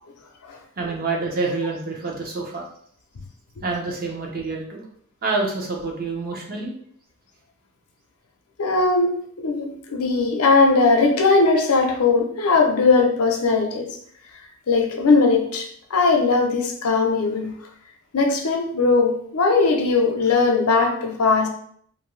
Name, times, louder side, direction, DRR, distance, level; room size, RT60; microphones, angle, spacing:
voice 1, 0.8-2.6 3.6-4.8 5.2-6.7, right 3 dB, 40° right, -1 dB, 0.7 m, -27 dB
voice 2, 8.6-14.0 14.7-17.6 18.1-21.5, left 3 dB, 85° left, 3 dB, 0.6 m, -19 dB
2.6 x 2.6 x 3.1 m, 0.64 s
head